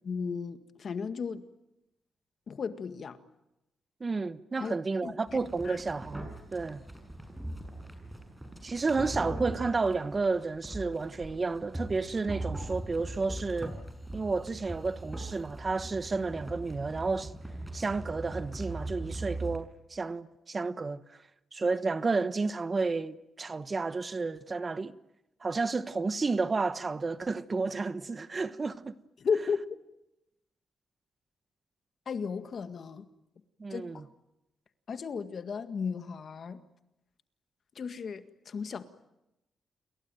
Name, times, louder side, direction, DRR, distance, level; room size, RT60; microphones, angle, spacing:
voice 1, 0.0-1.4 2.5-3.2 4.6-4.7 5.0-5.1 5.7-5.8 29.2-29.6 32.1-33.0 33.7-33.8 34.9-36.6 37.8-38.8, left 5 dB, 55° left, 1.9 m, -34 dB
voice 2, 4.0-6.8 8.6-13.7 14.1-17.3 17.7-21.2 21.5-25.0 25.4-28.9 33.6-34.1, right 4 dB, 35° right, 1.1 m, -31 dB
sound 1, 5.3-19.6, right 1 dB, 10° right, 6.6 m, -40 dB
29.0 x 22.0 x 9.2 m
cardioid pair, 90°, 0 cm